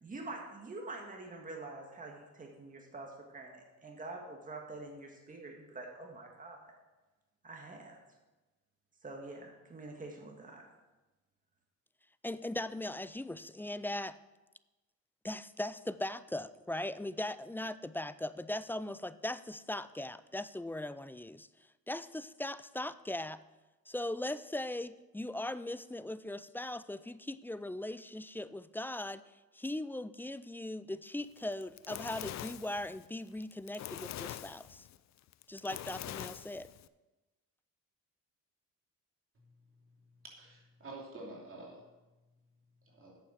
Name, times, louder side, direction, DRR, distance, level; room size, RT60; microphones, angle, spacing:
voice 1, 0.0-6.7 7.4-8.0 9.0-10.7, right 2 dB, 25° right, 1 dB, 1.9 m, -46 dB
voice 2, 12.2-14.2 15.2-21.5 21.9-23.4 23.9-29.2 29.5-34.9 35.5-36.7, left 1 dB, 5° left, 15 dB, 0.3 m, -39 dB
Fire, 31.4-36.9, left 12 dB, 65° left, 0.5 m, -44 dB
voice 3, 40.2-41.8 42.8-43.2, right 2 dB, 45° right, -2 dB, 2.9 m, -49 dB
8.8 x 7.1 x 6.0 m, 1.1 s
cardioid pair, 90°, 30 cm